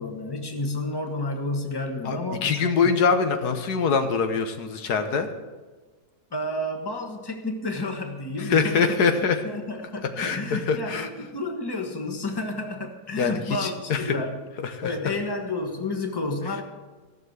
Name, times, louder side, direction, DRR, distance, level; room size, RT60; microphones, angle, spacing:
voice 1, 0.0-2.9 6.3-9.0 9.4-14.4 14.8-16.6, left 2 dB, 15° left, 3 dB, 1.4 m, -31 dB
voice 2, 2.0-5.3 8.4-9.4 10.2-11.1 13.2-14.0 14.6-14.9, left 5 dB, 90° left, 7 dB, 1.7 m, -24 dB
15.0 x 6.8 x 8.0 m, 1.3 s
omnidirectional pair, 1.7 m